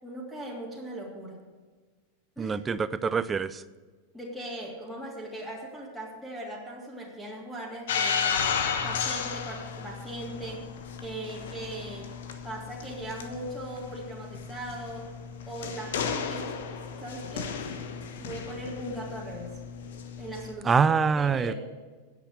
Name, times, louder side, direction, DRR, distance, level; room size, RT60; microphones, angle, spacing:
voice 1, 0.0-1.4 2.4-2.6 4.1-10.7 11.0-12.1 12.4-15.1 15.5-16.6 17.0-17.5 18.2-19.5 20.2-21.5, right 1 dB, ahead, -3 dB, 3.0 m, -39 dB
voice 2, 2.4-3.6 20.6-21.5, right 5 dB, 20° right, 16 dB, 0.5 m, -25 dB
sound 1, 7.9-20.5, left 6 dB, 60° left, 1.2 m, -34 dB
9.9 x 8.3 x 9.1 m, 1.4 s
figure-of-eight pair, 90°, 0 cm